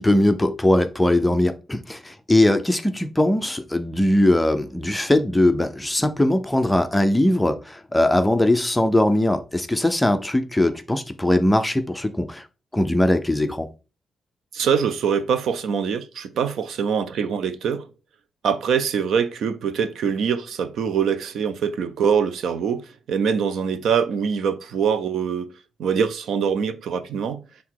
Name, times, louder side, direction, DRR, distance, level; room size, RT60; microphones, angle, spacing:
voice 1, 0.0-12.4 12.7-13.7, left 1 dB, 5° left, 0.5 m, -20 dB
voice 2, 14.5-17.8 18.4-25.5 25.8-27.4, right 7 dB, 70° right, 0.6 m, -23 dB
5.9 x 3.6 x 4.6 m
wide cardioid pair, 175°, 0 cm